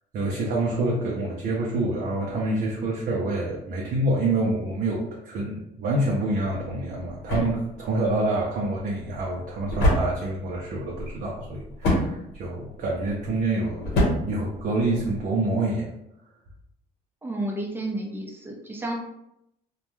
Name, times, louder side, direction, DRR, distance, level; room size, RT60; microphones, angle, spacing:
voice 1, 0.1-15.9, right 2 dB, 60° right, -3 dB, 0.5 m, -27 dB
sound 1, 6.4-15.3, left 1 dB, 75° left, 1.0 m, -29 dB
voice 2, 17.2-18.9, right 1 dB, 15° right, -1 dB, 0.5 m, -31 dB
2.2 x 2.1 x 3.0 m, 0.82 s
cardioid pair, 110°, 17 cm